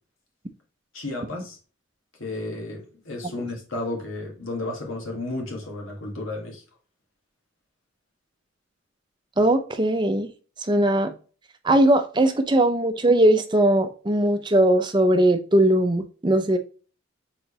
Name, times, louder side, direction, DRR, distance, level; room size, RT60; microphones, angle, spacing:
voice 1, 0.9-1.6 2.2-6.6, left 2 dB, 80° left, 1.8 m, -32 dB
voice 2, 9.4-10.3 10.7-11.1 11.6-16.6, right 1 dB, 20° right, 0.5 m, -19 dB
4.5 x 3.8 x 3.0 m
head